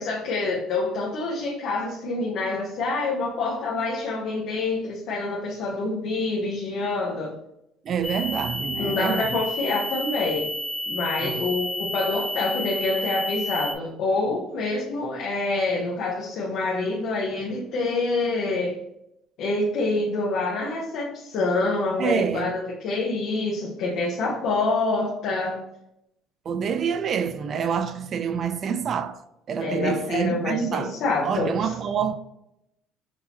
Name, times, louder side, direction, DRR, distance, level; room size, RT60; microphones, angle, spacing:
voice 1, 0.0-7.3 8.8-10.5 10.9-18.8 19.4-25.6 29.6-31.7, left 3 dB, 55° left, 0.8 m, -26 dB
voice 2, 7.8-9.3 11.2-11.4 22.0-22.5 26.5-29.2 29.5-30.9 31.2-32.1, right 7 dB, 40° right, 0.3 m, -27 dB
sound 1, 8.0-13.7, left 1 dB, ahead, 0.9 m, -31 dB
6.0 x 2.7 x 2.8 m
cardioid pair, 145°, 0 cm